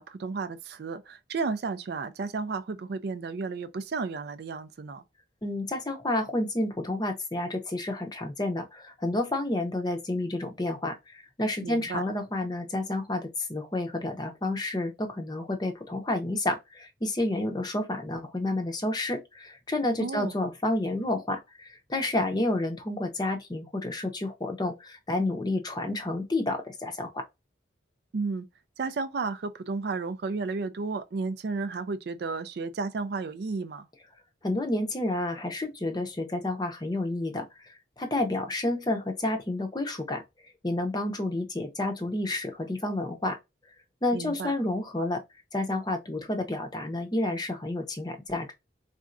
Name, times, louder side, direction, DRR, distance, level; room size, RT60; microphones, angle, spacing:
voice 1, 0.0-5.0 11.6-12.0 20.0-20.4 28.1-28.5 28.8-33.9 44.1-44.5, right 4 dB, 55° right, 0.4 m, -33 dB
voice 2, 5.4-27.2 34.4-40.2 40.6-43.4 44.0-45.2 45.5-48.5, left 2 dB, 20° left, 0.6 m, -30 dB
4.2 x 3.6 x 2.5 m
head